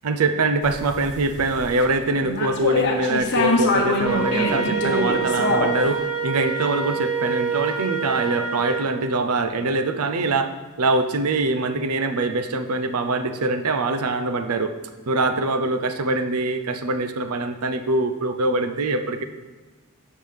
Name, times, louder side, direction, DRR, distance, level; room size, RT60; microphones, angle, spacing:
voice 1, 0.0-10.5 10.8-14.7 15.1-19.2, right 2 dB, 85° right, 8 dB, 0.6 m, -23 dB
sound 1, 0.6-1.8 2.2-5.9, left 2 dB, 55° left, 1.3 m, -24 dB
Wind instrument woodwind instrument, 4.0-8.9, right 6 dB, 70° right, 1.8 m, -26 dB
12.0 x 7.3 x 3.4 m, 1.3 s
head